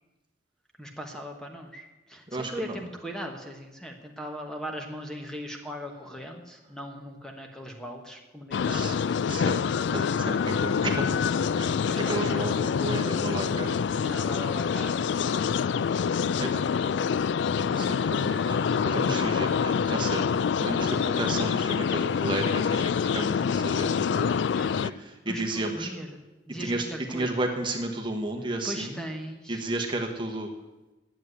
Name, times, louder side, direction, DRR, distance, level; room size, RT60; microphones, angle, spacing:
voice 1, 0.8-9.0 11.9-12.6 14.0-15.1 16.1-17.2 18.7-18.9 24.5-24.9 25.3-26.2 26.5-27.4 28.6-29.6, equal, 5° left, 2 dB, 1.2 m, -39 dB
voice 2, 2.3-2.9 8.7-9.0 9.3-9.6 9.9-13.8 16.4-16.6 17.5-20.2 20.6-24.3 24.8-25.9 26.6-29.0 29.5-30.5, right 2 dB, 25° right, 2 dB, 1.2 m, -33 dB
sound 1, 8.5-24.9, left 6 dB, 70° left, 0.3 m, -26 dB
10.5 x 8.1 x 9.2 m, 1.1 s
head